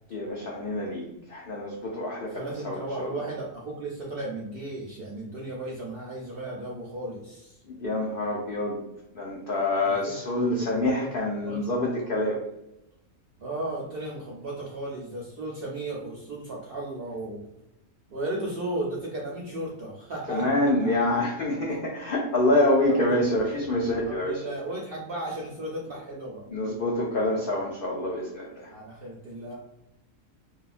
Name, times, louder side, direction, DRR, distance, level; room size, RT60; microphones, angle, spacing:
voice 1, 0.1-3.2 7.7-8.8 9.1-12.4 20.3-24.4 26.5-28.7, left 1 dB, 75° left, -2 dB, 0.5 m, -26 dB
voice 2, 2.3-7.6 9.8-11.1 11.4-11.7 13.4-17.4 18.1-20.9 22.9-23.2 23.4-23.6 24.0-26.4 28.7-29.5, right 2 dB, 65° right, -3 dB, 0.5 m, -35 dB
2.8 x 2.3 x 2.4 m, 0.88 s
omnidirectional pair, 1.5 m